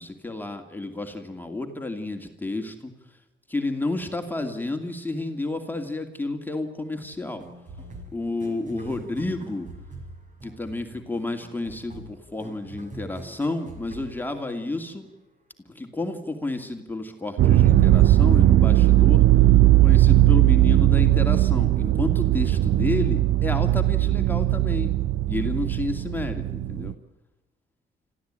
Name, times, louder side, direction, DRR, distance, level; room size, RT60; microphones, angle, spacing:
voice 1, 0.0-2.9 3.5-7.4 8.1-9.7 10.4-15.1 15.7-19.2 19.8-24.9 25.2-26.9, left 2 dB, 10° left, 4 dB, 2.6 m, -31 dB
sound 1, 7.4-15.0, right 2 dB, 40° right, 5.6 m, -44 dB
sound 2, 17.4-26.9, right 14 dB, 70° right, 0.8 m, -18 dB
26.5 x 15.0 x 9.0 m, 1.0 s
cardioid pair, 90°, 20 cm